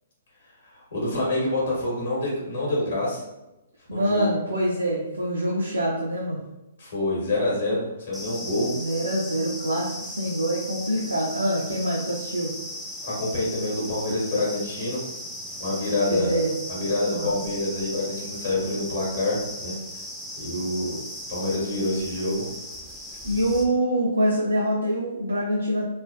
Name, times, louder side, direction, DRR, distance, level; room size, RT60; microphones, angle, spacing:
voice 1, 0.6-3.2 3.9-4.2 6.8-8.7 13.0-15.0 15.6-16.3 16.7-19.7 20.4-21.0 21.3-22.4, left 2 dB, 65° left, -5 dB, 1.3 m, -27 dB
voice 2, 3.9-6.4 8.5-12.5 16.1-16.5 17.1-17.3 23.2-25.9, right 1 dB, 80° right, -3 dB, 0.5 m, -25 dB
sound 1, 8.1-23.6, equal, 5° left, 0.4 m, -37 dB
3.2 x 2.1 x 2.4 m, 0.96 s
figure-of-eight pair, 120°, 0 cm